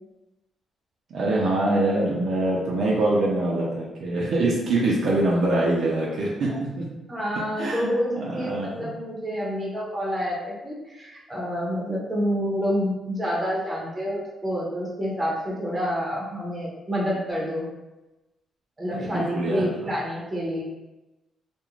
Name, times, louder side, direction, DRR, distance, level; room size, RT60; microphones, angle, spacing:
voice 1, 1.1-6.9 7.6-8.9 18.9-19.9, right 2 dB, 60° right, -4 dB, 0.5 m, -24 dB
voice 2, 7.1-17.7 18.8-20.6, equal, 20° right, -5 dB, 0.7 m, -28 dB
2.4 x 2.1 x 3.0 m, 1.0 s
cardioid pair, 140°, 0 cm